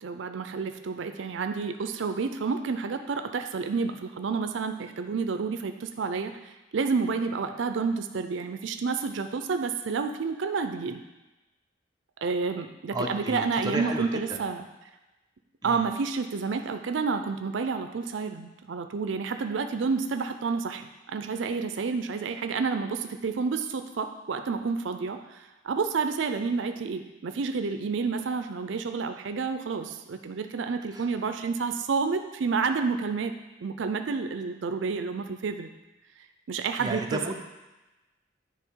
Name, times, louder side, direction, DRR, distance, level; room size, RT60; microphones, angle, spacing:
voice 1, 0.0-11.0 12.2-14.6 15.6-33.3 33.6-35.7 36.5-37.3, right 5 dB, 75° right, 7 dB, 0.4 m, -30 dB
voice 2, 12.9-14.4 15.6-15.9 30.9-31.1 36.8-37.3, right 1 dB, 20° right, 1 dB, 0.6 m, -33 dB
10.0 x 3.4 x 4.6 m, 1.1 s
head